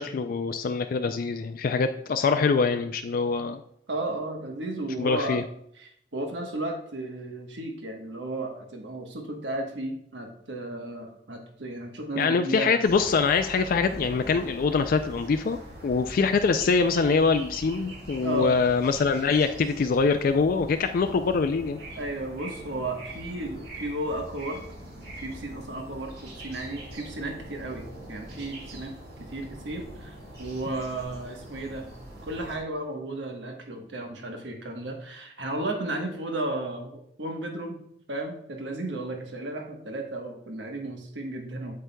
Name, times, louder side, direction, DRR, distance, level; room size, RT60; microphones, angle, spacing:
voice 1, 0.0-3.6 5.0-5.4 12.2-21.8, left 4 dB, 50° left, 8 dB, 0.3 m, -24 dB
voice 2, 3.9-5.4 5.8-12.7 16.2-16.3 18.2-18.5 22.0-24.6 25.1-28.9 29.2-31.9 32.2-37.8 38.1-41.7, right 2 dB, 85° right, 3 dB, 1.2 m, -34 dB
sound 1, 12.8-32.6, right 1 dB, 60° right, 2.0 m, -43 dB
8.1 x 7.7 x 2.2 m, 0.71 s
head